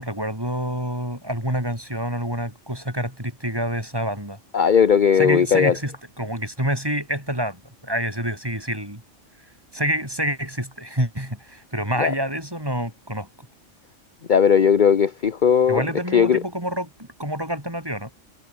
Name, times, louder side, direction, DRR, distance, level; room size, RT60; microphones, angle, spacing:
voice 1, 0.0-4.4 5.1-9.0 9.7-13.3 15.7-18.1, equal, 20° right, 6.7 m, -27 dB
voice 2, 4.5-5.8 12.0-12.1 14.3-15.9 16.1-16.4, left 7 dB, 45° left, 0.9 m, -17 dB
omnidirectional pair, 1.3 m